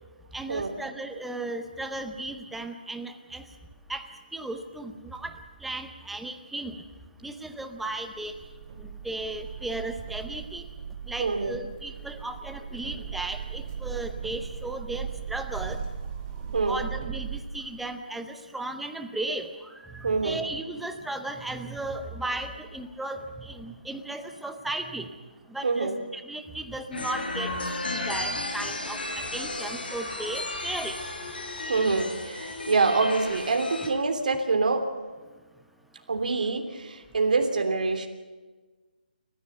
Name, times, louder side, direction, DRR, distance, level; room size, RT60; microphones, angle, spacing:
voice 1, 0.3-3.4 3.9-4.0 4.3-5.3 5.6-6.7 7.2-8.3 9.0-10.6 11.1-15.8 16.7-19.5 19.8-25.1 25.5-27.5 28.1-29.0 29.3-30.9, right 2 dB, ahead, 6 dB, 0.7 m, -35 dB
sound 1, 8.1-17.4, right 7 dB, 25° right, 2.7 m, -38 dB
voice 2, 11.2-11.5 16.5-16.8 20.0-20.4 25.6-26.0 31.7-34.8 36.1-38.1, right 4 dB, 55° right, 5 dB, 3.2 m, -25 dB
sound 2, 26.9-33.9, left 2 dB, 75° left, 5.6 m, -34 dB
29.5 x 14.5 x 6.8 m, 1.3 s
hypercardioid pair, 170°, 5 cm